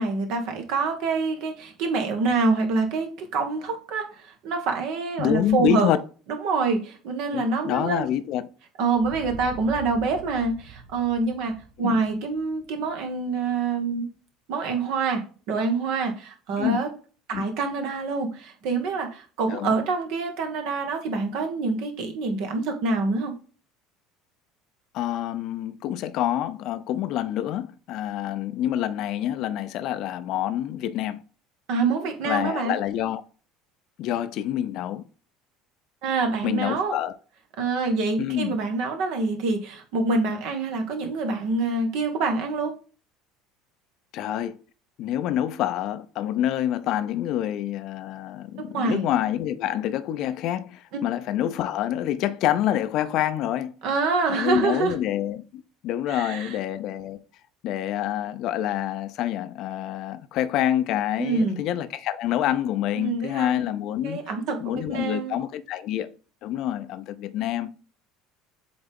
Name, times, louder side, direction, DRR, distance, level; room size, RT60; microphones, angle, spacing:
voice 1, 0.0-5.9 6.3-8.1 8.8-14.1 14.5-16.9 17.3-23.4 31.7-32.7 36.0-37.0 37.6-42.7 48.6-49.1 53.8-54.9 56.1-56.6 61.2-61.6 62.9-63.7 64.0-65.4, right 4 dB, 60° right, 1.4 m, -26 dB
voice 2, 5.2-6.0 7.3-8.4 11.8-12.0 16.6-16.8 17.3-17.5 19.5-19.7 24.9-31.2 32.2-33.2 34.0-35.0 36.4-37.1 38.2-38.6 44.1-44.6 45.0-53.7 54.3-57.2 57.6-64.2 64.6-66.1 66.4-67.7, left 11 dB, 55° left, 0.6 m, -27 dB
sound 1, 8.9-13.5, right 3 dB, 75° right, 2.0 m, -44 dB
7.8 x 3.5 x 3.6 m
figure-of-eight pair, 65°, 0 cm